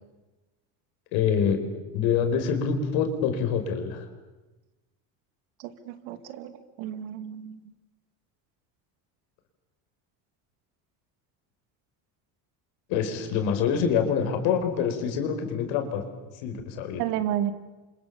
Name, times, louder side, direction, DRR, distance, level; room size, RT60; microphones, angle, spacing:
voice 1, 1.1-1.6 1.9-4.0 12.9-16.0 16.4-17.0, left 7 dB, 80° left, 6 dB, 5.1 m, -26 dB
voice 2, 5.6-6.5 6.8-7.6 17.0-17.5, right 11 dB, 85° right, 10 dB, 2.6 m, -31 dB
30.0 x 26.0 x 7.1 m, 1.1 s
supercardioid pair, 115°, 45 cm